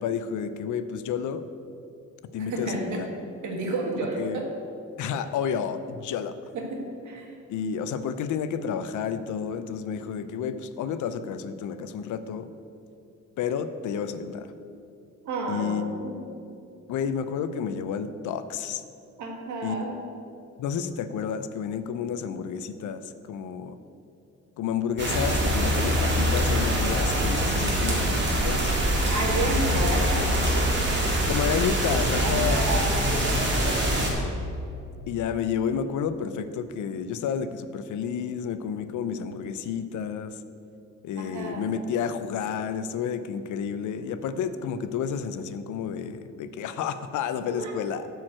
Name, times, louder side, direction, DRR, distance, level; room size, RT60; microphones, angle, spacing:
voice 1, 0.0-1.4 2.3-3.1 4.2-4.4 5.0-6.3 7.5-12.5 13.4-14.5 15.5-15.9 16.9-18.8 19.6-19.9 20.6-23.0 23.3-23.8 24.6-28.7 31.3-32.6 35.1-40.3 41.0-48.1, left 7 dB, 85° left, 12 dB, 0.6 m, -30 dB
voice 2, 2.4-3.0 3.4-4.5 6.5-7.3 15.2-16.2 19.2-20.1 29.1-30.7 32.2-34.2 41.2-41.7 47.4-47.7 48.0-48.1, right 2 dB, 80° right, 1 dB, 1.6 m, -32 dB
sound 1, 25.0-34.1, equal, 40° right, 1.8 m, -24 dB
8.9 x 4.7 x 7.4 m, 2.6 s
cardioid pair, 145°, 29 cm